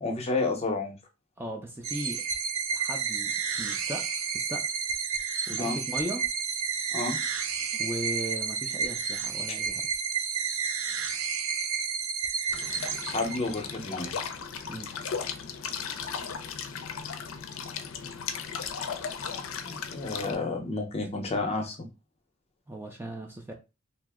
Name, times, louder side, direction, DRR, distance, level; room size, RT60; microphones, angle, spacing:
voice 1, 0.0-1.0 5.6-5.8 6.9-7.2 13.1-14.1 19.6-21.8, left 3 dB, 30° left, 4 dB, 0.6 m, -30 dB
voice 2, 1.4-2.2 2.7-4.8 5.5-6.3 7.7-9.9 14.7-14.9 22.7-23.5, right 1 dB, 10° right, 2 dB, 0.4 m, -37 dB
sound 1, 1.8-13.7, right 6 dB, 75° right, 0.4 m, -31 dB
sound 2, 12.5-20.3, left 6 dB, 70° left, 0.4 m, -36 dB
2.8 x 2.0 x 3.5 m, 0.28 s
head